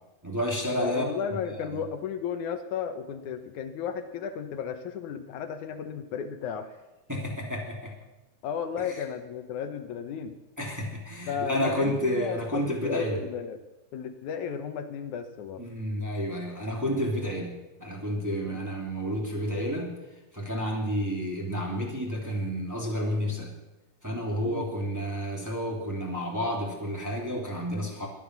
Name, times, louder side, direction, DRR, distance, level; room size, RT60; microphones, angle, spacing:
voice 1, 0.2-1.0 1.3-1.8 7.1-7.9 8.9-9.0 10.6-13.2 15.6-19.9 20.3-23.5 24.0-28.1, equal, 5° right, -1 dB, 2.4 m, -30 dB
voice 2, 0.7-6.7 8.4-10.4 11.3-13.6 13.9-15.7 18.4-18.6 24.4-24.7, left 7 dB, 75° left, 7 dB, 2.4 m, -34 dB
22.5 x 10.0 x 6.1 m, 1.0 s
omnidirectional pair, 3.6 m